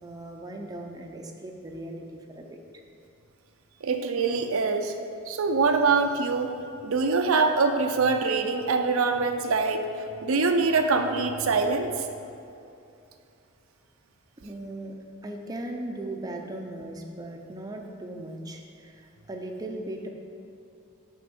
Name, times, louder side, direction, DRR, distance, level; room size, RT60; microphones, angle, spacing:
voice 1, 0.0-2.6 14.4-20.1, right 1 dB, 20° right, 2 dB, 0.6 m, -38 dB
voice 2, 3.8-4.9 5.3-6.6 6.8-9.9 10.2-11.9, right 4 dB, 75° right, 5 dB, 0.5 m, -24 dB
6.6 x 5.2 x 5.3 m, 2.7 s
head